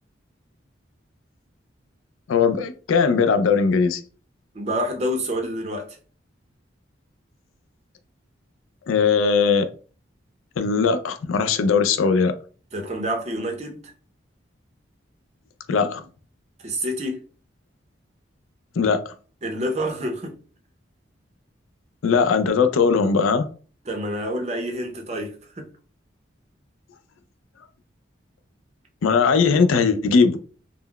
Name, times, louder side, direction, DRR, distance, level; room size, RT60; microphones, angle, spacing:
voice 1, 2.3-4.0 8.9-9.7 10.6-12.3 15.7-16.0 18.8-19.0 22.0-23.5 29.0-30.4, left 5 dB, 90° left, 0.4 m, -19 dB
voice 2, 4.5-6.0 12.7-13.8 16.6-17.2 19.4-20.4 23.9-25.7, equal, 35° right, 0.5 m, -28 dB
3.6 x 2.0 x 2.2 m
head